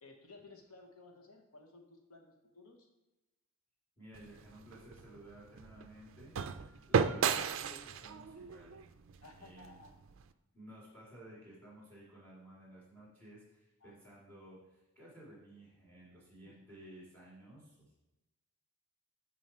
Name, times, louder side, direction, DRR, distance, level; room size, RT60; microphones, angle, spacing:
voice 1, 0.0-2.9 9.2-9.9 13.8-14.1 16.4-16.7, left 3 dB, 80° left, 2 dB, 1.1 m, -57 dB
voice 2, 4.0-8.8 9.3-9.8 10.5-18.0, right 1 dB, 10° left, -6 dB, 2.9 m, -55 dB
sound 1, 4.1-10.3, right 6 dB, 60° right, 0.4 m, -36 dB
9.4 x 4.4 x 4.4 m, 1.0 s
head